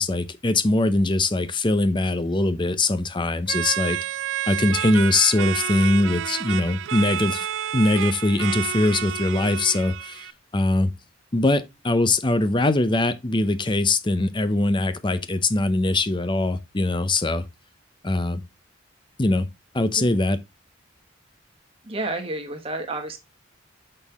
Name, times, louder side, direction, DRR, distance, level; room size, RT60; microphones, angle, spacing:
voice 1, 0.0-4.0 4.5-7.5 7.7-10.3 10.5-10.9 11.3-17.4 18.0-18.4 19.2-19.5 19.7-20.4, left 2 dB, 25° left, 0.6 m, -22 dB
sound 1, 3.5-10.3, right 10 dB, 70° right, 0.3 m, -30 dB
voice 2, 21.8-23.2, right 2 dB, 30° right, 1.5 m, -30 dB
6.4 x 5.5 x 3.5 m
head